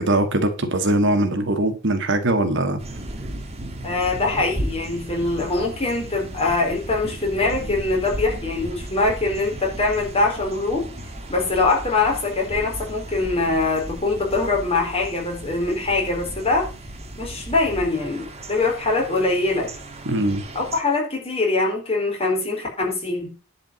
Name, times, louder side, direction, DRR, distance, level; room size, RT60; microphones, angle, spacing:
voice 1, 0.0-2.8 20.0-20.4, right 1 dB, 60° right, 7 dB, 1.7 m, -21 dB
sound 1, 2.8-20.8, right 1 dB, 30° right, 1.6 m, -35 dB
voice 2, 3.8-10.9 11.3-16.7 17.2-19.7 20.5-23.3, left 3 dB, 30° left, 0 dB, 4.1 m, -23 dB
11.0 x 5.1 x 7.0 m, 0.35 s
head